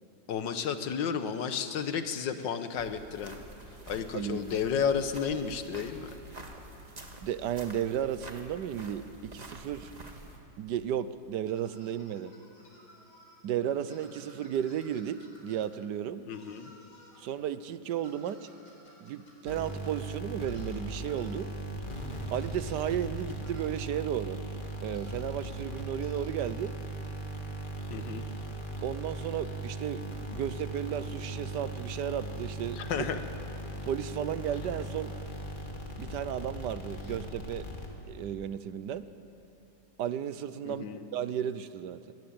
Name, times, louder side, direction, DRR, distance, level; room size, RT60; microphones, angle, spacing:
voice 1, 0.3-3.4 3.9-6.1 16.3-16.7 27.9-28.3 32.7-33.2 40.6-41.1, left 7 dB, 80° left, 9 dB, 1.8 m, -32 dB
sound 1, 2.8-10.4, right 1 dB, 25° right, 1.7 m, -48 dB
voice 2, 7.2-9.9 10.6-12.3 13.4-16.2 17.2-18.5 19.0-21.5 22.3-24.4 24.8-26.7 28.8-30.0 30.3-33.1 33.8-35.1 36.0-37.7 38.1-39.1 40.0-40.8 41.1-42.1, right 9 dB, 75° right, 14 dB, 1.3 m, -34 dB
sound 2, 11.4-13.3 13.9-15.7 16.3-17.2 17.9-19.9 20.4-20.7 21.1-21.3 22.3-22.5 23.4-23.7 24.9-25.2 26.0-26.2, equal, 60° left, 5.2 m, -57 dB
sound 3, 19.5-38.2, right 1 dB, 25° left, 2.1 m, -39 dB
20.0 x 18.0 x 8.7 m, 2.8 s
omnidirectional pair, 2.0 m